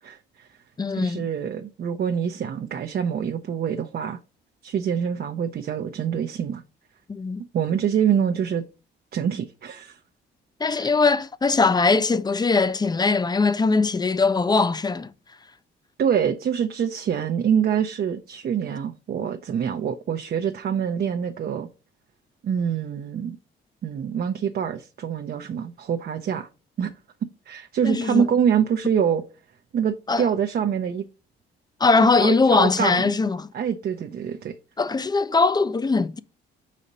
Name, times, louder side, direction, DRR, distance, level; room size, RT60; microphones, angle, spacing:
voice 1, 0.0-0.5 0.9-4.2 4.6-6.6 7.5-8.6 9.1-10.0 10.7-10.9 16.0-21.7 22.4-23.4 23.8-26.5 26.8-26.9 27.5-29.2 29.7-31.1 32.2-33.2 33.5-34.6, right 8 dB, 50° right, 0.6 m, -25 dB
voice 2, 0.8-1.3 7.1-7.4 10.6-15.1 27.8-28.3 30.1-30.2 31.8-33.5 34.8-36.2, left 4 dB, 20° left, 0.5 m, -21 dB
4.9 x 4.2 x 5.3 m
cardioid pair, 90°, 20 cm